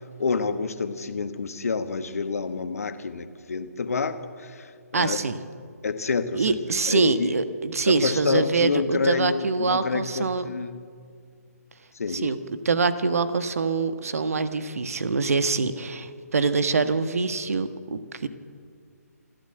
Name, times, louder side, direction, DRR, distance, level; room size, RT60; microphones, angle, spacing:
voice 1, 0.2-5.2 5.8-6.6 6.8-7.4 7.9-10.8 11.9-12.3, left 4 dB, 65° left, 9 dB, 1.5 m, -28 dB
voice 2, 4.9-5.4 6.3-10.5 12.1-12.4 12.6-18.3, right 4 dB, 60° right, 11 dB, 1.4 m, -25 dB
27.5 x 12.0 x 7.9 m, 2.1 s
figure-of-eight pair, 140°, 9 cm